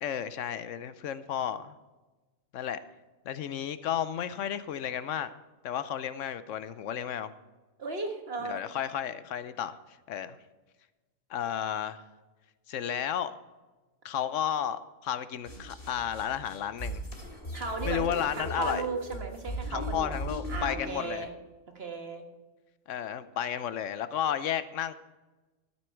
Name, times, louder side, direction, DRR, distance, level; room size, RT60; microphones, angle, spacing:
voice 1, 0.0-1.7 2.5-2.8 3.3-5.3 5.6-7.3 8.5-9.8 10.1-10.4 11.3-12.0 12.7-13.3 14.0-17.0 17.8-18.8 19.7-21.2 22.9-24.9, left 9 dB, 75° left, 13 dB, 1.0 m, -32 dB
voice 2, 7.8-8.6 17.5-21.3 21.7-22.2, right 3 dB, 50° right, 3 dB, 1.7 m, -36 dB
sound 1, 15.4-20.8, equal, 45° left, 3.0 m, -37 dB
13.0 x 8.4 x 4.5 m, 1.2 s
omnidirectional pair, 1.3 m